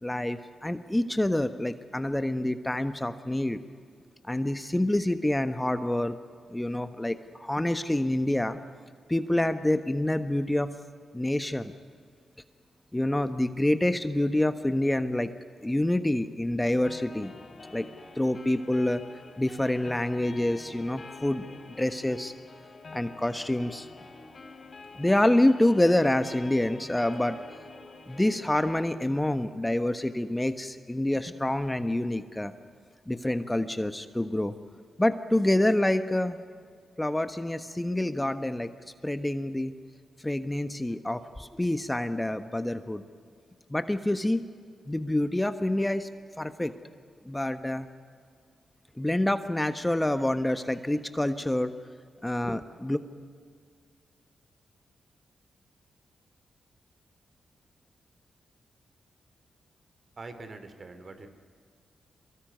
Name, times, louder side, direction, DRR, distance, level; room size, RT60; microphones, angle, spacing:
voice 1, 0.0-3.6 4.3-6.2 6.5-8.6 9.1-10.7 11.1-11.7 12.9-15.3 15.6-17.3 17.7-17.9 18.1-19.0 19.4-21.4 21.8-22.3 22.9-23.9 24.9-27.4 28.1-32.5 33.1-34.5 35.0-36.4 37.0-38.7 39.0-39.7 40.2-43.0 43.7-44.4 44.9-46.1 46.4-46.7 47.2-47.9 49.0-51.7 52.2-53.0, left 1 dB, 15° left, 10 dB, 1.3 m, -27 dB
sound 1, 16.8-28.8, left 3 dB, 45° left, 3.8 m, -47 dB
voice 2, 60.2-61.3, right 3 dB, 50° right, 9 dB, 3.1 m, -43 dB
23.5 x 21.5 x 9.4 m, 2.1 s
supercardioid pair, 45°, 0 cm